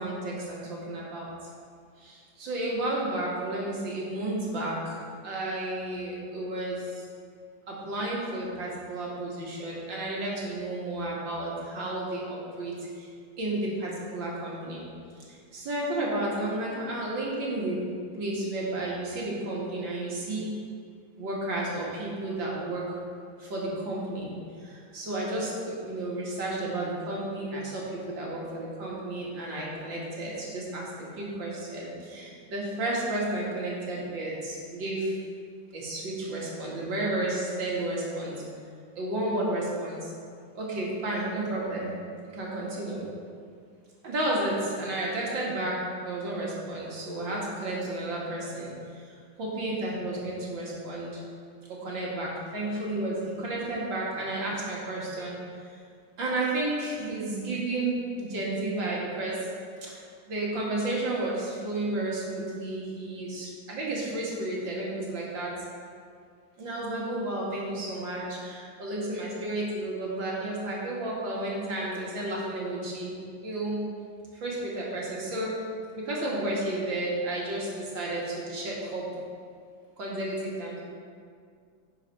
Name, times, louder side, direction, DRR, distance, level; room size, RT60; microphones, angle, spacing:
voice 1, 0.0-1.5 2.0-7.0 7.7-13.1 13.4-14.9 15.3-17.9 18.1-20.5 21.2-23.0 23.4-35.1 35.7-38.4 39.0-40.1 40.6-42.0 42.3-43.1 44.0-51.2 51.7-55.3 56.2-59.5 59.8-65.5 66.6-73.1 73.4-73.8 74.3-75.5 75.9-79.1 80.0-80.8, right 1 dB, 80° right, -4 dB, 2.7 m, -32 dB
9.9 x 5.6 x 5.9 m, 2.2 s
omnidirectional pair, 2.0 m